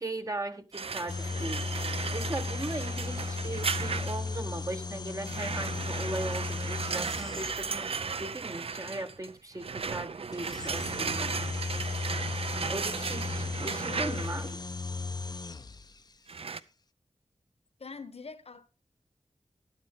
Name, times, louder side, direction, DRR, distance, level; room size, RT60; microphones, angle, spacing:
voice 1, 0.0-11.3 12.7-14.6, right 2 dB, 30° right, 1.0 m, -38 dB
sound 1, 0.7-4.4 5.3-14.5 16.3-16.6, right 5 dB, 60° right, 0.6 m, -35 dB
sound 2, 1.1-8.0 10.3-16.1, left 4 dB, 40° left, 0.6 m, -36 dB
voice 2, 13.8-14.7 17.8-18.7, left 4 dB, 65° left, 1.2 m, -44 dB
13.0 x 10.5 x 3.6 m
wide cardioid pair, 75°, 11 cm